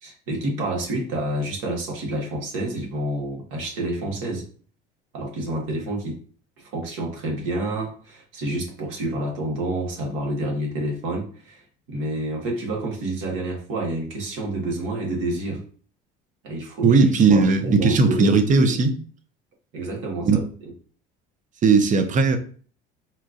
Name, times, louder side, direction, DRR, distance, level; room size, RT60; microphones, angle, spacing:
voice 1, 0.0-4.4 5.1-6.2 6.6-11.6 11.9-15.6 16.4-17.0 17.3-18.4 19.7-20.4, right 1 dB, 70° right, 1.5 m, -28 dB
voice 2, 16.8-19.0 20.2-20.4 21.6-22.4, right 4 dB, 40° right, 0.7 m, -17 dB
4.4 x 2.4 x 2.5 m
supercardioid pair, 95°, 21 cm